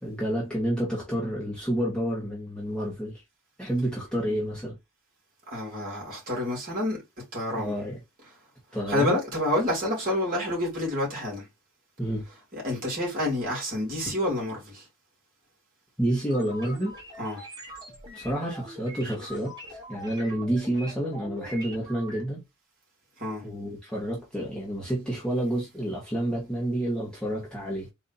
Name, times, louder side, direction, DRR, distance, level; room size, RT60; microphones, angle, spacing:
voice 1, 0.0-3.2 3.6-4.8 7.6-8.0 8.7-9.2 12.0-12.2 16.0-16.9 18.1-22.4 23.4-27.9, right 1 dB, 5° left, 1.3 m, -29 dB
voice 2, 5.5-7.0 7.3-7.7 8.9-11.5 12.5-14.8 17.2-17.4 23.2-23.4, left 1 dB, 40° right, 2.5 m, -28 dB
sound 1, 16.3-22.2, equal, 20° right, 1.2 m, -43 dB
4.0 x 2.8 x 4.0 m
head